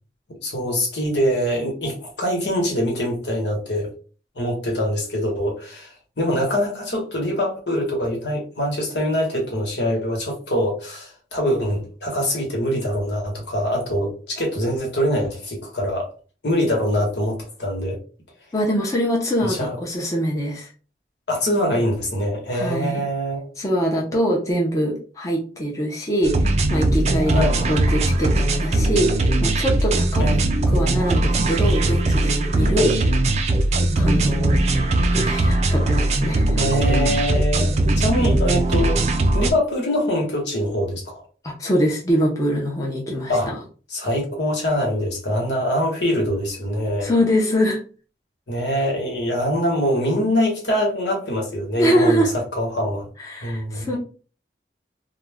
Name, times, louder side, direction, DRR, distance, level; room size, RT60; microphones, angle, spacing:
voice 1, 0.4-3.9 4.3-16.1 16.4-18.0 19.4-19.8 21.3-23.4 27.3-27.7 30.2-30.6 32.7-32.9 36.6-39.0 39.3-41.2 43.3-43.5 43.9-47.1 48.5-52.3 52.6-53.1 53.4-53.9, equal, 85° left, -1 dB, 1.2 m, -24 dB
voice 2, 18.5-20.7 22.5-23.1 23.6-30.2 30.7-32.9 34.0-34.6 35.1-36.6 41.4-43.6 47.0-47.8 51.8-52.3 53.2-54.0, equal, 20° left, -3 dB, 0.6 m, -23 dB
sound 1, 26.2-39.5, right 2 dB, 35° right, 0.3 m, -20 dB
2.4 x 2.2 x 3.3 m, 0.38 s
head